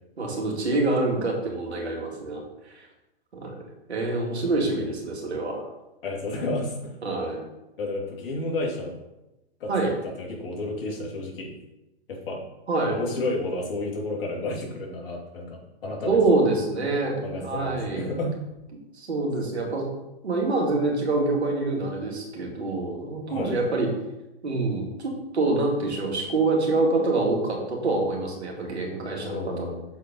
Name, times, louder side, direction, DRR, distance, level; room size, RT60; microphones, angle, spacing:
voice 1, 0.2-2.4 2.7-2.9 3.3-5.6 7.0-7.4 9.7-9.9 12.7-13.0 16.1-18.1 18.9-19.9 20.2-23.9 24.4-29.7, right 2 dB, 80° right, -1 dB, 2.5 m, -26 dB
voice 2, 6.0-6.9 7.8-8.9 9.6-9.7 10.0-11.5 12.1-12.4 12.9-16.2 17.2-18.3 23.3-23.6 29.2-29.9, left 2 dB, 60° left, -1 dB, 2.9 m, -31 dB
7.2 x 4.8 x 5.3 m, 0.97 s
hypercardioid pair, 115°, 32 cm